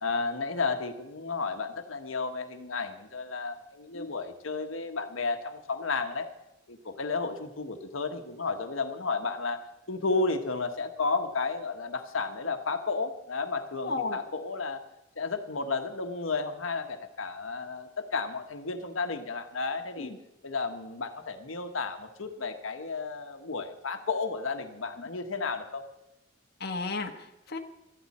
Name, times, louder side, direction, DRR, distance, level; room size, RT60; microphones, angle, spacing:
voice 1, 0.0-6.3 6.7-14.8 15.2-20.1 20.4-25.8, left 4 dB, 90° left, 6 dB, 1.3 m, -32 dB
voice 2, 13.8-14.2 20.0-20.2 26.6-27.6, left 3 dB, 55° left, 4 dB, 1.4 m, -33 dB
19.0 x 13.5 x 4.3 m, 0.92 s
head